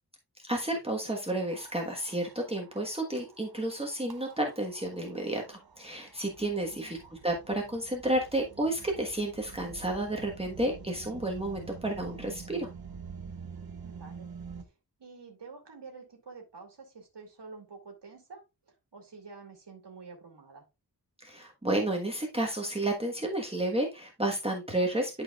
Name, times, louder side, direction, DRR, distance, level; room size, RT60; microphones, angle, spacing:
voice 1, 0.5-12.7 21.2-25.2, right 1 dB, 15° right, 0 dB, 1.3 m, -31 dB
sound 1, 1.3-14.6, right 6 dB, 60° right, 1.0 m, -48 dB
voice 2, 6.6-7.0 13.8-14.3 14.6-20.7, right 4 dB, 80° right, 1 dB, 2.3 m, -49 dB
12.0 x 4.7 x 2.4 m, 0.26 s
wide cardioid pair, 90°, 41 cm